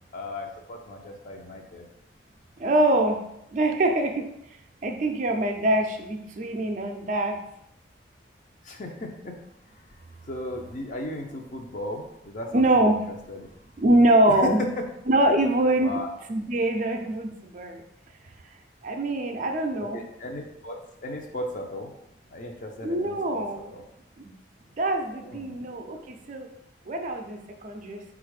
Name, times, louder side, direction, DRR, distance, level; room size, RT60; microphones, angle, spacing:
voice 1, 0.1-1.9 8.6-9.4 10.3-13.5 14.3-14.8 15.8-16.1 19.9-20.8 21.0-21.9 22.3-23.8 25.1-25.6, left 1 dB, 45° left, 2 dB, 0.6 m, -35 dB
voice 2, 2.6-3.3 3.5-4.3 4.8-7.4 12.5-13.0 13.8-14.6 15.1-16.0 16.3-17.8 18.8-20.1 22.8-23.7 24.2-24.3 24.7-26.5 26.9-28.0, right 1 dB, 40° right, 4 dB, 0.4 m, -24 dB
4.3 x 2.4 x 4.7 m, 0.79 s
head